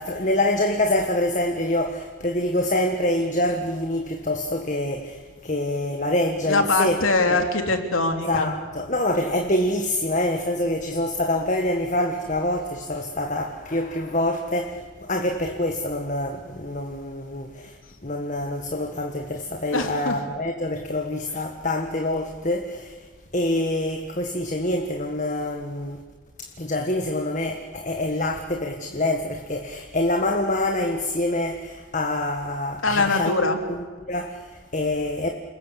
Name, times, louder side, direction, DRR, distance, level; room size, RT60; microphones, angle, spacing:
voice 1, 0.0-7.0 7.3-7.5 8.3-23.0 23.3-26.0 26.4-33.3 33.7-33.8 34.1-35.3, left 1 dB, 40° left, 1.6 m, -26 dB
voice 2, 6.5-8.5 19.7-20.2 32.8-33.6, left 3 dB, 85° left, 3.2 m, -22 dB
29.0 x 20.0 x 8.4 m
head